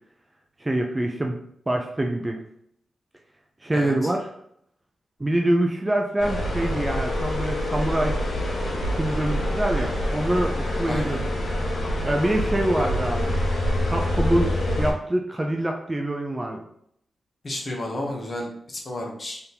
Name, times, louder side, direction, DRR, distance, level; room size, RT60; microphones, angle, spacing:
voice 1, 0.6-2.4 3.6-4.3 5.2-8.2 8.9-11.2 12.0-13.4 13.9-16.6, right 1 dB, 15° right, 1 dB, 0.4 m, -25 dB
voice 2, 3.7-4.1 10.9-11.2 17.4-19.4, left 1 dB, 30° left, 0 dB, 0.8 m, -32 dB
sound 1, 6.2-14.9, left 1 dB, 85° left, 1.3 m, -26 dB
4.0 x 3.5 x 2.8 m, 0.70 s
wide cardioid pair, 165°, 0 cm